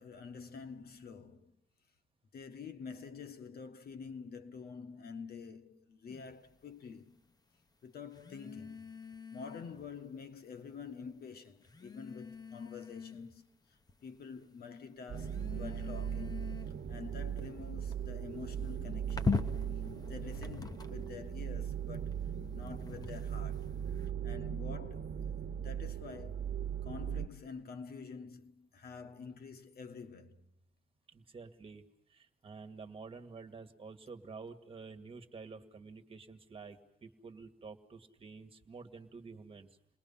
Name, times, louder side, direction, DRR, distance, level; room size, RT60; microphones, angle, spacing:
voice 1, 0.0-1.6 2.3-7.2 7.8-8.9 9.3-16.5 16.9-19.4 20.0-23.7 24.2-26.5 26.8-30.4, left 5 dB, 65° left, 1.6 m, -48 dB
sound 1, 6.1-6.4 8.1-9.9 10.9-11.0 11.6-13.4 13.9-14.4 15.1-21.2 21.9-24.1, left 4 dB, 25° left, 0.8 m, -42 dB
sound 2, 15.1-27.3, right 8 dB, 65° right, 1.2 m, -39 dB
voice 2, 31.1-31.8 32.1-39.7, right 4 dB, 35° right, 2.0 m, -50 dB
30.0 x 21.0 x 5.6 m
wide cardioid pair, 140°, 17 cm